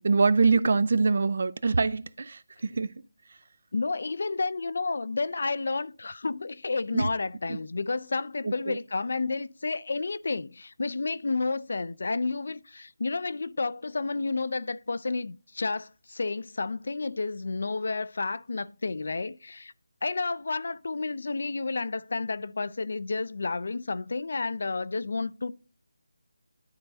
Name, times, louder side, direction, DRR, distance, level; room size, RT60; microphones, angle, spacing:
voice 1, 0.0-2.9 6.9-7.1 7.5-7.6 8.4-8.8, right 4 dB, 50° right, 0.4 m, -24 dB
voice 2, 3.7-19.7 20.0-25.5, left 3 dB, 55° left, 0.4 m, -31 dB
11.5 x 3.8 x 2.6 m
figure-of-eight pair, 155°, 0 cm